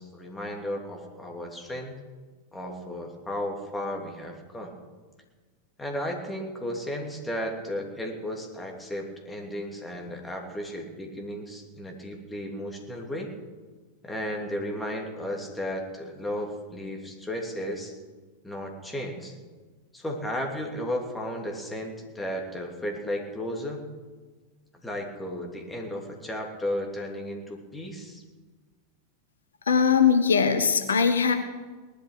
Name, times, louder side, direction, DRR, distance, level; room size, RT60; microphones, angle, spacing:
voice 1, 0.0-2.0 2.5-4.8 5.8-13.3 14.0-18.0 18.4-19.3 19.9-23.9 24.8-28.2, equal, 10° left, 1 dB, 2.9 m, -34 dB
voice 2, 29.7-31.3, left 6 dB, 70° left, 9 dB, 1.0 m, -21 dB
19.0 x 12.0 x 6.3 m, 1.4 s
figure-of-eight pair, 90°, 0 cm